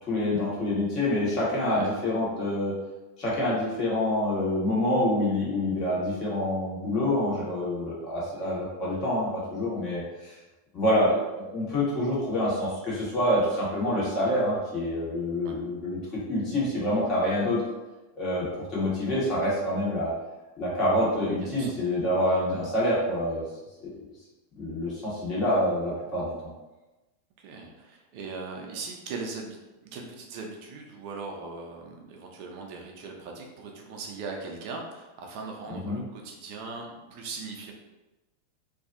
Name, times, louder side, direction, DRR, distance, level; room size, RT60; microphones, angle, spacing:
voice 1, 0.0-2.7 3.2-10.4 10.7-16.0 16.3-17.6 18.2-20.1 20.6-23.4 23.8-23.9 24.6-26.3 35.8-36.0, left 1 dB, 35° left, -7 dB, 1.3 m, -27 dB
voice 2, 21.4-21.7 27.4-29.6 29.9-37.7, right 4 dB, 55° right, 1 dB, 0.6 m, -39 dB
2.7 x 2.3 x 2.6 m, 1.1 s
hypercardioid pair, 90°, 0 cm